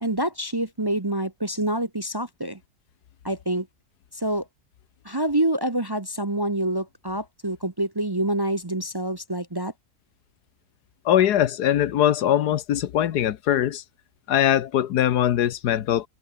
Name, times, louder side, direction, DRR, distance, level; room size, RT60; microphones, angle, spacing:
voice 1, 0.0-2.6 3.2-3.7 4.1-4.5 5.0-9.7, right 1 dB, 20° right, 0.8 m, -26 dB
voice 2, 11.0-13.8 14.3-16.1, left 11 dB, 90° left, 1.5 m, -21 dB
omnidirectional pair, 1.7 m